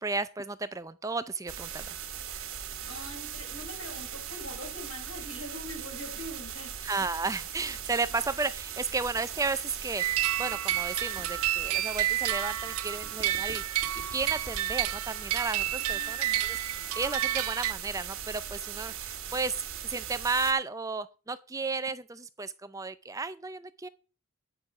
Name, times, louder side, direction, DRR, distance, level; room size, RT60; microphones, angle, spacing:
voice 1, 0.0-1.9 6.8-13.6 14.1-16.6 17.0-23.9, right 4 dB, 15° right, 0.4 m, -33 dB
sound 1, 1.5-20.5, right 8 dB, 65° right, 1.8 m, -39 dB
voice 2, 2.7-6.8 15.8-16.4, left 1 dB, 70° left, 5.6 m, -43 dB
sound 2, 10.0-17.7, right 13 dB, 85° right, 0.6 m, -30 dB
9.6 x 6.8 x 5.9 m
head